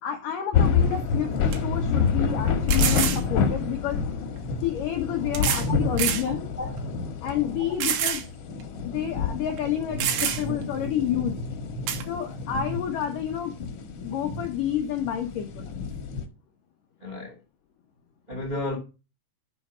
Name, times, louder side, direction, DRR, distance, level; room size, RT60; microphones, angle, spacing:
voice 1, 0.0-1.3 1.6-4.0 4.6-6.4 7.2-8.2 8.8-11.4 12.1-13.5 14.0-15.6, left 10 dB, 85° left, 1.8 m, -29 dB
sound 1, 0.5-16.3, left 5 dB, 65° left, 2.0 m, -28 dB
sound 2, 0.9-1.0 1.5-1.6 2.7-3.2 4.4-4.5 5.3-5.7 6.0-6.3 6.8-6.9 7.8-8.3 8.6-8.7 9.6-9.7 10.0-10.6 11.9-12.0, right 9 dB, 75° right, 2.9 m, -26 dB
voice 2, 6.3-6.8 7.6-7.7 17.0-17.4 18.3-18.8, left 2 dB, 40° right, 0.5 m, -34 dB
6.9 x 5.4 x 6.1 m
omnidirectional pair, 5.2 m